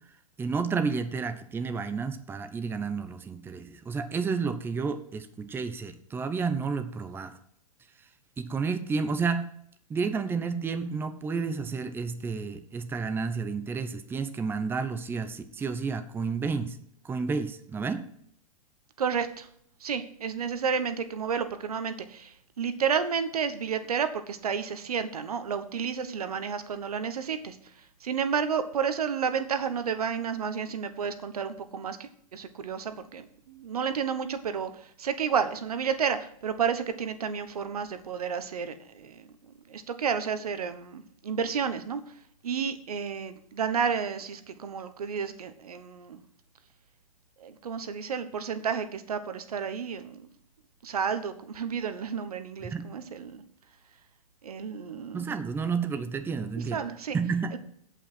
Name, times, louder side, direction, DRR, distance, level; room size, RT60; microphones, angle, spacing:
voice 1, 0.4-7.3 8.4-9.5 9.9-16.8 17.0-18.0 52.6-52.8 55.1-56.8 57.1-57.6, right 5 dB, 10° right, 9 dB, 0.8 m, -31 dB
voice 2, 19.0-19.5 19.8-27.6 28.0-34.7 35.0-39.3 39.7-42.0 42.4-46.2 47.4-50.3 50.8-53.4 54.4-55.3 56.7-57.2, right 6 dB, 90° right, 10 dB, 1.2 m, -31 dB
16.0 x 5.7 x 4.4 m, 0.67 s
hypercardioid pair, 135°, 19 cm